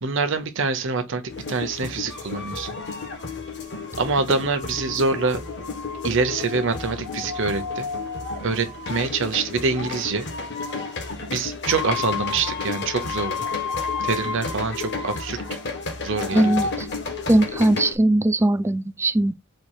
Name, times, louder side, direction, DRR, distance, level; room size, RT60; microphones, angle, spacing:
voice 1, 0.0-2.8 4.0-5.4 6.0-7.9 8.4-10.3 11.3-13.5 14.0-15.4 16.0-16.6, right 4 dB, 65° right, 0.8 m, -25 dB
sound 1, 1.3-18.0, left 4 dB, 60° left, 1.2 m, -31 dB
voice 2, 16.3-16.9 17.3-19.3, right 1 dB, 15° right, 0.3 m, -20 dB
4.3 x 2.4 x 4.7 m
head